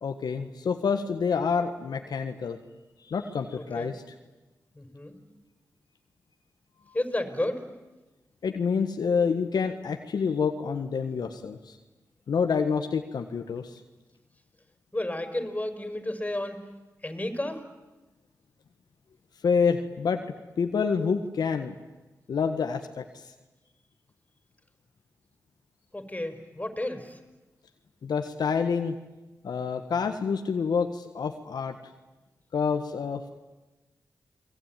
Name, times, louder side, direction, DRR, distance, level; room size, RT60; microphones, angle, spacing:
voice 1, 0.0-2.6 3.1-4.0 8.4-11.7 12.3-13.7 19.4-20.2 20.6-21.7 22.3-23.2 28.0-28.9 29.4-31.8 32.5-33.2, left 6 dB, 80° left, 5 dB, 1.6 m, -27 dB
voice 2, 3.6-3.9 4.8-5.2 6.9-7.6 14.9-16.6 17.0-17.7 25.9-27.2, left 1 dB, 20° left, 6 dB, 5.4 m, -32 dB
29.5 x 21.0 x 9.3 m, 1.1 s
cardioid pair, 40°, 7 cm